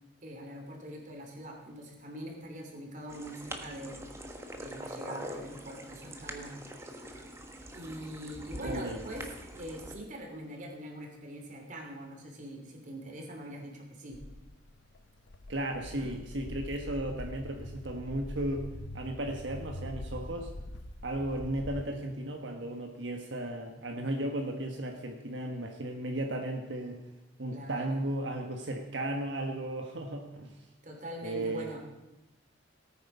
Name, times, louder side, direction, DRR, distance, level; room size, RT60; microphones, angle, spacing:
voice 1, 0.2-4.0 4.6-6.7 6.9-7.0 7.7-14.2 15.9-16.1 27.5-28.1 30.8-31.8, equal, 45° right, 1 dB, 3.0 m, -43 dB
sound 1, 3.1-9.9, right 1 dB, 15° right, 1.3 m, -44 dB
voice 2, 8.6-9.0 15.5-18.7 18.9-20.5 21.0-27.0 27.4-30.5 31.2-31.8, right 1 dB, 85° right, 2 dB, 1.4 m, -35 dB
Walk footsteps, 14.1-21.8, left 1 dB, 85° left, 0.9 m, -43 dB
18.0 x 9.1 x 5.5 m, 0.97 s
head